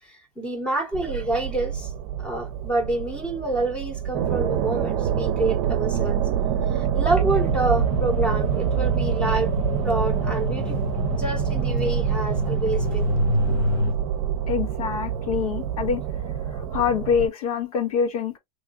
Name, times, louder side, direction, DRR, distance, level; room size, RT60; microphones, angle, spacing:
voice 1, 0.1-1.9 2.2-6.2 6.7-9.5 9.8-10.8 11.1-13.1, right 2 dB, 5° left, 0.9 m, -27 dB
sound 1, 0.9-17.3, right 9 dB, 45° right, 0.7 m, -26 dB
sound 2, 7.2-13.9, left 2 dB, 60° left, 0.9 m, -28 dB
voice 2, 14.5-16.0 16.5-18.4, left 6 dB, 75° left, 1.6 m, -25 dB
3.6 x 3.1 x 2.4 m
supercardioid pair, 155°, 19 cm